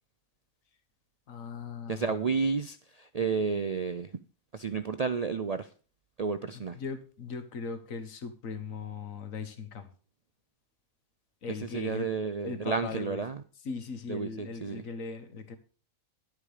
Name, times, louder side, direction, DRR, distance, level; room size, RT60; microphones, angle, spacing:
voice 1, 1.3-2.1 6.5-9.9 11.4-12.1 12.4-13.2 13.6-15.6, left 5 dB, 70° left, 9 dB, 1.7 m, -39 dB
voice 2, 1.9-4.1 4.5-5.7 6.2-6.8 11.7-13.4 14.1-14.8, right 5 dB, 75° right, 11 dB, 0.3 m, -31 dB
11.0 x 8.3 x 5.0 m, 0.38 s
omnidirectional pair, 1.5 m